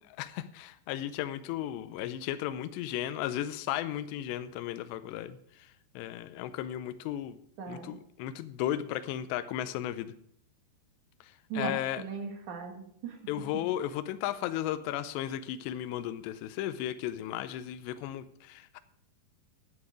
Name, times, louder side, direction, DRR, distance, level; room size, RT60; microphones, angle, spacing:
voice 1, 0.2-5.4 6.0-7.4 7.7-10.1 11.6-12.0 13.3-18.8, left 12 dB, 85° left, 11 dB, 2.8 m, -35 dB
voice 2, 7.6-7.9 11.5-13.2, right 5 dB, 55° right, 4 dB, 2.5 m, -38 dB
10.5 x 9.9 x 4.8 m, 0.68 s
omnidirectional pair, 5.1 m